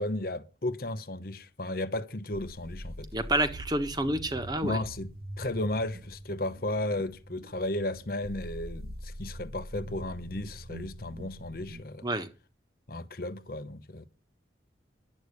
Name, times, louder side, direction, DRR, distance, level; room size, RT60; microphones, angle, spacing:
voice 1, 0.0-3.1 4.6-12.0 12.9-14.1, left 1 dB, 50° left, 0.9 m, -34 dB
sound 1, 2.3-11.8, equal, 55° right, 1.6 m, -43 dB
voice 2, 3.1-4.8 12.0-12.3, right 1 dB, 20° right, 1.4 m, -29 dB
11.0 x 8.5 x 8.2 m
head